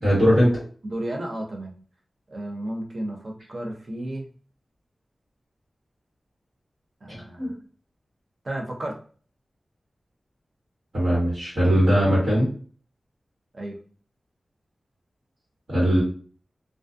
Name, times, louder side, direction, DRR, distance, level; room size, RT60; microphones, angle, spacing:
voice 1, 0.0-0.5 7.4-7.5 10.9-12.5 15.7-16.0, equal, 65° right, -8 dB, 1.4 m, -19 dB
voice 2, 0.8-1.7 2.3-4.3 7.0-7.6 8.4-8.9 13.5-13.8, right 1 dB, 45° right, 0 dB, 0.6 m, -33 dB
2.3 x 2.3 x 2.5 m, 0.42 s
wide cardioid pair, 90°, 0 cm